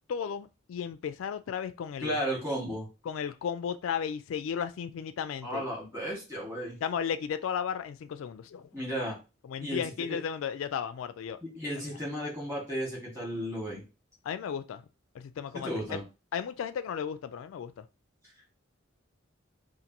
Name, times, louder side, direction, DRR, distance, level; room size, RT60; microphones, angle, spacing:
voice 1, 0.1-2.2 3.1-5.6 6.8-8.7 9.5-11.4 14.2-14.8 15.1-16.0 16.3-17.8, left 7 dB, 80° left, 0.3 m, -34 dB
voice 2, 2.0-2.9 5.4-6.8 8.7-9.2 9.6-10.2 11.4-13.8 15.5-16.0, equal, 15° right, 1.9 m, -34 dB
5.1 x 2.6 x 2.9 m
head